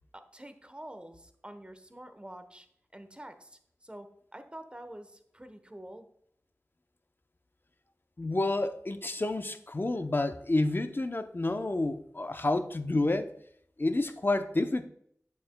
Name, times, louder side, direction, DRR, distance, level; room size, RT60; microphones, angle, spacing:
voice 1, 0.1-2.7 2.9-6.1, right 1 dB, 20° right, 8 dB, 1.0 m, -47 dB
voice 2, 8.2-13.3 13.8-14.9, left 2 dB, 40° left, 8 dB, 0.6 m, -29 dB
8.4 x 7.0 x 2.2 m, 0.66 s
wide cardioid pair, 40°, 5 cm